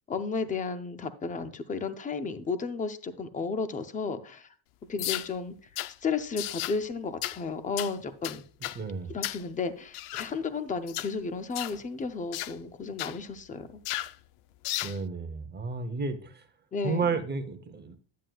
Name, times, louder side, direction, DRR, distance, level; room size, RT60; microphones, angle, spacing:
voice 1, 0.1-4.5 4.9-5.5 6.0-8.4 9.1-13.8 16.7-17.0, left 4 dB, 15° left, 0.4 m, -33 dB
sound 1, 5.0-5.3 5.8-5.9 6.4-6.8 7.2-7.4 7.8-7.9 8.2-8.8 9.2-9.4 9.9-10.3 10.9-11.1 11.6-11.8 12.3-12.5 13.0-13.2 13.9-14.1 14.6-15.0, left 16 dB, 85° left, 0.6 m, -34 dB
voice 2, 8.7-9.1 14.8-16.4 16.8-18.0, right 4 dB, 20° right, 0.7 m, -32 dB
10.5 x 9.2 x 2.3 m
cardioid pair, 165°, 50 cm